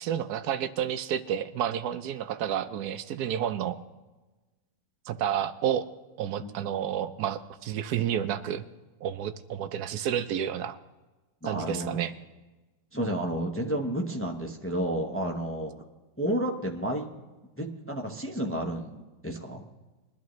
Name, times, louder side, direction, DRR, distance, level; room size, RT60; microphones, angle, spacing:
voice 1, 0.0-3.8 5.1-5.9 6.2-8.6 9.0-10.8 11.5-12.1, right 9 dB, 70° right, 11 dB, 0.9 m, -30 dB
voice 2, 11.4-12.1 12.9-15.7 16.2-17.1 17.6-19.7, right 1 dB, 20° left, 1 dB, 0.3 m, -31 dB
21.5 x 11.5 x 3.1 m, 1.2 s
omnidirectional pair, 2.0 m